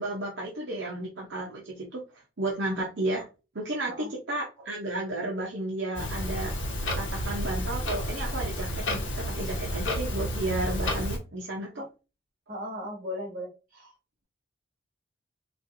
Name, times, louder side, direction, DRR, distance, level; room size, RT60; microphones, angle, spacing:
voice 1, 0.0-2.0 2.4-3.2 3.5-6.6 7.0-11.8, right 1 dB, 70° right, -2 dB, 0.8 m, -33 dB
Clock, 5.9-11.2, equal, 75° left, 1.1 m, -31 dB
voice 2, 12.5-13.9, left 1 dB, 50° right, -3 dB, 2.0 m, -37 dB
4.2 x 2.4 x 2.6 m, 0.31 s
head